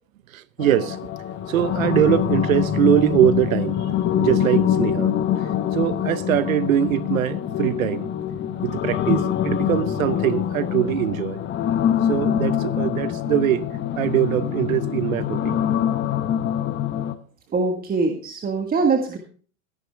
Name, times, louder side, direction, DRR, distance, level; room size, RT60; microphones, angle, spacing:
voice 1, 0.3-1.0 1.5-3.8 4.2-5.1 5.7-8.1 8.6-11.4 12.1-13.7 14.0-15.6, right 11 dB, 75° right, 0.9 m, -22 dB
sound 1, 0.6-17.1, left 10 dB, 25° left, 1.0 m, -24 dB
voice 2, 17.5-19.2, right 4 dB, 20° right, 1.6 m, -22 dB
14.5 x 10.5 x 3.4 m
hypercardioid pair, 105°, 41 cm